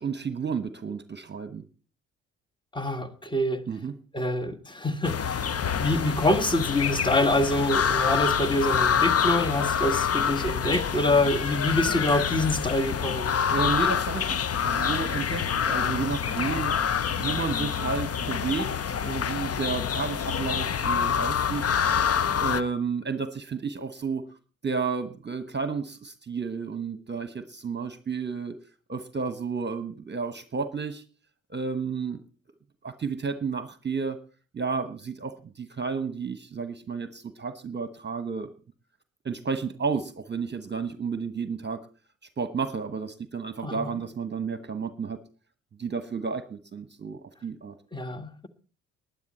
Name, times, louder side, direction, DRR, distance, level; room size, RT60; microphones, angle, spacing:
voice 1, 0.0-1.6 3.7-4.0 13.5-21.6 22.4-24.4 24.6-28.6 28.9-31.0 31.5-32.2 32.8-34.2 34.5-38.5 39.2-41.8 42.4-45.2 45.8-47.7, right 5 dB, 25° right, 1.2 m, -32 dB
voice 2, 2.7-3.6 4.1-5.4 5.7-13.3 43.6-43.9 47.9-48.5, left 1 dB, 10° left, 1.7 m, -26 dB
sound 1, 5.0-22.6, left 7 dB, 40° left, 1.0 m, -27 dB
19.5 x 10.5 x 4.3 m
hypercardioid pair, 45°, 39 cm